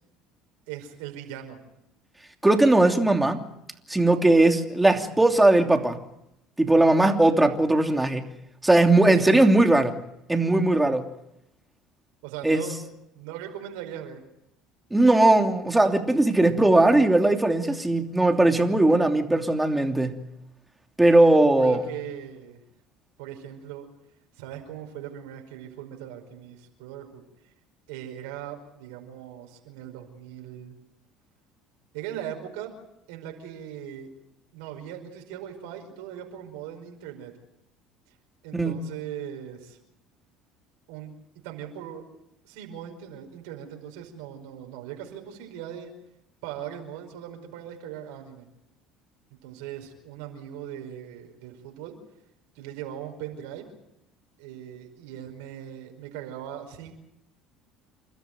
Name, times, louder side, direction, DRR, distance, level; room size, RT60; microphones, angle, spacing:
voice 1, 0.7-1.6 12.2-12.7 13.1-14.2 21.6-22.6 23.2-23.9 24.4-27.2 27.9-30.8 31.9-32.7 33.1-34.1 34.5-37.3 38.4-39.8 40.9-41.1 41.4-42.1 42.4-45.9 46.4-48.5 49.4-52.0 52.5-53.7 54.4-56.9, right 10 dB, 80° right, 5.1 m, -39 dB
voice 2, 2.4-3.4 3.9-6.0 6.6-8.2 8.6-9.9 10.3-11.0 12.4-12.6 14.9-20.2 21.0-21.8 38.5-38.8, right 2 dB, 10° right, 2.9 m, -19 dB
29.0 x 13.0 x 9.3 m
hypercardioid pair, 75°, 0 cm